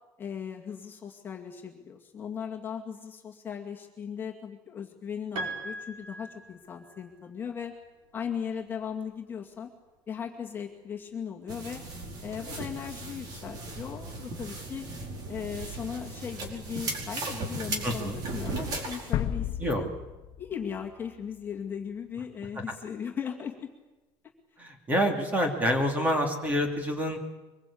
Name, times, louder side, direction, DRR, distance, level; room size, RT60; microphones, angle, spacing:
voice 1, 0.2-7.7 8.1-9.7 10.1-11.8 12.2-14.9 15.3-19.9 20.4-23.7, left 7 dB, 20° left, 0 dB, 2.3 m, -38 dB
Piano, 5.4-7.0, right 2 dB, 60° right, 4.9 m, -39 dB
sound 1, 11.5-19.1, right 2 dB, 40° right, 4.9 m, -37 dB
voice 2, 17.8-18.2 19.6-19.9 24.6-27.2, equal, 15° right, 4 dB, 2.9 m, -27 dB
sound 2, 19.1-22.0, left 10 dB, 50° left, 1.4 m, -34 dB
24.5 x 22.0 x 8.7 m, 1.2 s
cardioid pair, 175°, 10 cm